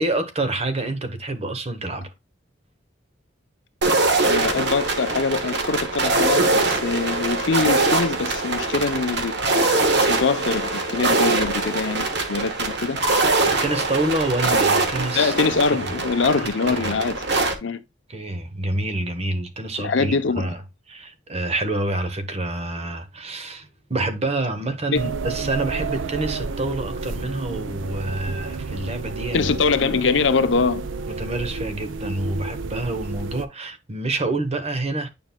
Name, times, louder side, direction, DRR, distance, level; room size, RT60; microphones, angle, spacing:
voice 1, 0.0-2.1 13.5-15.3 16.4-17.0 18.1-20.6 20.9-29.5 29.9-30.0 31.0-35.1, right 2 dB, 35° right, 0.9 m, -27 dB
sound 1, 3.8-17.5, right 3 dB, 60° right, 1.3 m, -22 dB
voice 2, 4.2-9.4 10.0-13.0 15.1-17.2 17.6-17.8 19.8-20.6 24.9-25.1 29.3-30.9, left 4 dB, 70° left, 0.6 m, -23 dB
sound 2, 24.9-33.5, right 4 dB, 80° right, 0.6 m, -31 dB
9.3 x 5.2 x 2.2 m
head